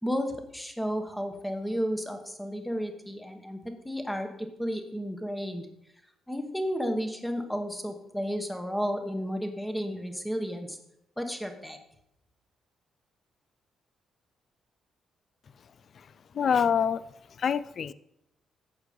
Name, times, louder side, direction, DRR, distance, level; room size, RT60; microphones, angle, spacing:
voice 1, 0.0-3.6 3.8-5.7 6.3-10.8 11.2-11.8, equal, 5° left, 1.2 m, -32 dB
voice 2, 15.9-17.0 17.4-17.9, left 7 dB, 45° left, 0.4 m, -26 dB
11.5 x 8.3 x 5.1 m
cardioid pair, 160°, 0 cm